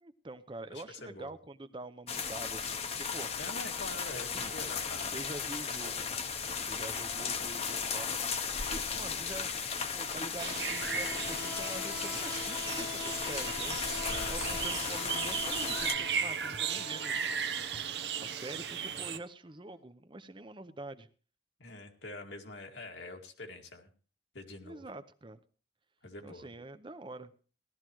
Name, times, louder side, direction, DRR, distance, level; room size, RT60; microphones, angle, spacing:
voice 1, 0.0-3.3 4.3-4.5 5.1-6.1 6.6-8.1 8.7-9.5 9.9-13.8 14.3-17.5 18.2-21.1 24.6-25.4 26.2-27.3, right 2 dB, 25° right, 12 dB, 0.8 m, -45 dB
voice 2, 0.7-1.4 3.3-5.2 14.1-15.0 21.6-23.9 24.3-24.8 26.0-26.5, left 2 dB, 85° left, 2 dB, 2.2 m, -45 dB
sound 1, 2.1-15.9, left 6 dB, 35° left, 0.9 m, -36 dB
sound 2, 10.2-18.8, left 6 dB, 60° left, 1.4 m, -45 dB
sound 3, 10.4-19.2, right 7 dB, 70° right, 0.9 m, -36 dB
17.0 x 13.0 x 3.1 m, 0.40 s
head